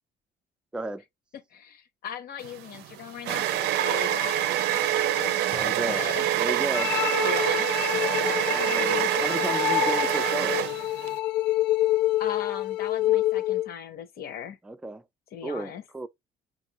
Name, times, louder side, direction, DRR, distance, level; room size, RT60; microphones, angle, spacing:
voice 1, 1.3-5.5 5.9-6.6 6.8-7.7 12.2-14.6 15.3-15.8, left 9 dB, 65° left, 1.0 m, -38 dB
sound 1, 2.4-11.2, right 12 dB, 80° right, 0.5 m, -26 dB
voice 2, 5.4-6.0 6.4-6.9 8.5-10.6 14.6-15.0 15.4-16.1, right 2 dB, 5° right, 0.3 m, -34 dB
sound 2, 5.5-6.8 7.5-7.6, left 5 dB, 25° left, 0.7 m, -46 dB
sound 3, 6.7-13.7, left 15 dB, 85° left, 0.4 m, -27 dB
5.1 x 2.6 x 2.9 m
cardioid pair, 110°, 17 cm